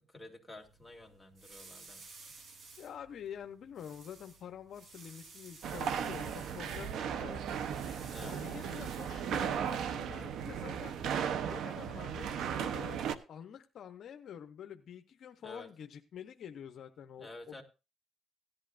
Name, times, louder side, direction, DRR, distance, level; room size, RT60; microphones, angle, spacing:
voice 1, 0.1-2.0 8.1-8.4 15.4-15.7 17.2-17.6, left 2 dB, 10° left, 2 dB, 2.5 m, -50 dB
sound 1, 0.6-9.8, right 3 dB, 60° right, 3.5 m, -55 dB
voice 2, 2.8-7.5 8.2-11.0 11.5-17.6, left 8 dB, 65° left, 7 dB, 0.8 m, -47 dB
sound 2, 5.6-13.1, right 8 dB, 75° right, 0.8 m, -36 dB
17.0 x 11.0 x 2.5 m, 0.29 s
cardioid pair, 90°, 0 cm